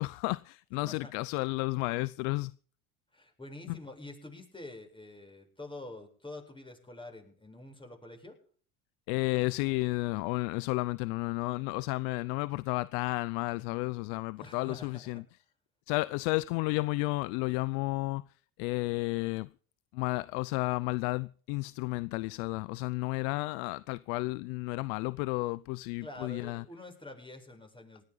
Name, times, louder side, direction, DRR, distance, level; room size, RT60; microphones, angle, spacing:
voice 1, 0.0-2.5 3.7-3.8 9.1-15.2 15.9-18.2 18.6-19.5 19.9-26.6, left 23 dB, 80° left, 0.7 m, -32 dB
voice 2, 3.1-8.4 14.4-15.2 26.0-28.0, left 2 dB, 10° left, 7.9 m, -47 dB
19.0 x 14.0 x 4.0 m
supercardioid pair, 85°, 42 cm